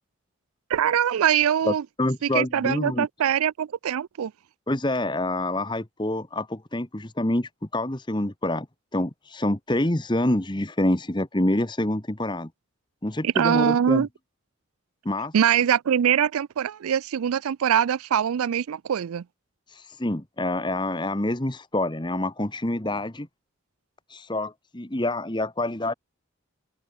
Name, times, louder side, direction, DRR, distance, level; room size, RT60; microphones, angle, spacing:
voice 1, 0.7-1.8 2.2-4.3 13.2-14.1 15.3-19.2, right 9 dB, 90° right, 0.4 m, -23 dB
voice 2, 1.6-3.1 4.7-8.7 8.9-12.5 13.0-14.1 15.0-15.3 19.7-23.3 24.1-25.9, left 1 dB, 20° left, 1.2 m, -27 dB
open air
head